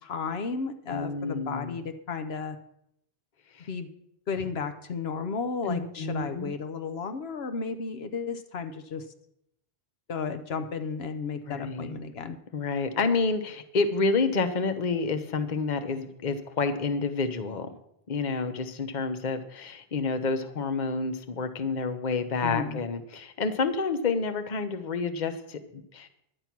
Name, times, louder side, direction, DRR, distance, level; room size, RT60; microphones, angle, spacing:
voice 1, 0.0-2.6 3.7-3.9 4.3-9.0 10.1-12.4 22.4-22.8, left 5 dB, 75° left, 9 dB, 1.0 m, -33 dB
voice 2, 0.9-1.8 3.5-3.7 5.6-6.5 11.5-12.0 12.5-17.7 18.1-26.1, left 4 dB, 45° left, 9 dB, 1.0 m, -29 dB
11.0 x 8.7 x 6.0 m, 0.76 s
omnidirectional pair, 1.1 m